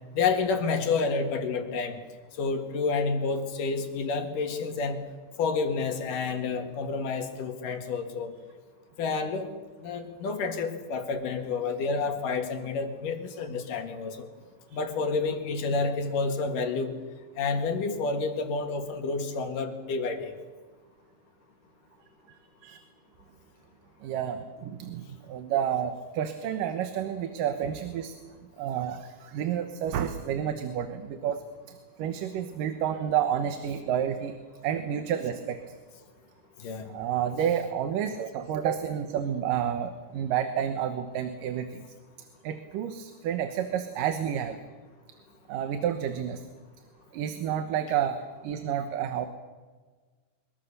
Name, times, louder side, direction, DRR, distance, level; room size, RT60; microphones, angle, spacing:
voice 1, 0.1-2.0 2.4-5.0 5.4-8.3 9.0-9.5 9.8-14.3 14.7-17.0 17.4-20.3 36.6-36.9, left 4 dB, 75° left, 6 dB, 3.5 m, -29 dB
voice 2, 24.0-28.2 28.6-34.4 34.6-35.8 36.9-41.8 42.4-44.6 45.5-46.4 47.1-49.3, right 9 dB, 80° right, 8 dB, 2.8 m, -30 dB
23.5 x 22.5 x 6.8 m, 1.4 s
omnidirectional pair, 3.9 m